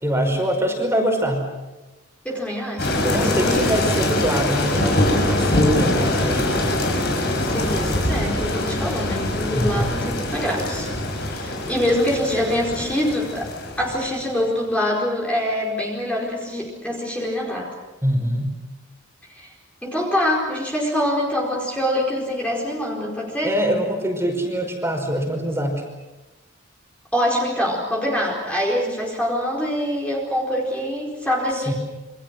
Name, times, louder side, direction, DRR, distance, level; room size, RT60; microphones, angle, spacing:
voice 1, 0.0-1.5 3.0-6.8 9.6-9.9 18.0-18.6 23.4-25.8 31.5-31.7, equal, 10° right, 3 dB, 5.3 m, -24 dB
voice 2, 2.2-3.7 7.5-13.5 13.8-17.8 19.3-19.5 19.8-23.5 27.1-31.7, equal, 5° left, -3 dB, 4.7 m, -25 dB
sound 1, 2.8-14.5, left 1 dB, 50° left, 6.7 m, -23 dB
28.5 x 26.0 x 6.2 m, 1.1 s
head